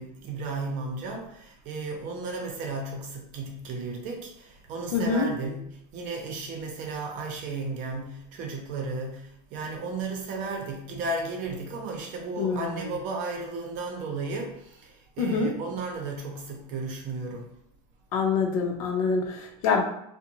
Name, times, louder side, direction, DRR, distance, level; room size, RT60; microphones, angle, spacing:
voice 1, 0.0-17.5, right 3 dB, 50° right, 1 dB, 0.7 m, -34 dB
voice 2, 4.9-5.3 12.4-12.9 15.2-15.5 18.1-19.8, left 4 dB, 80° left, 1 dB, 0.7 m, -25 dB
2.5 x 2.2 x 2.9 m, 0.75 s
supercardioid pair, 130°, 17 cm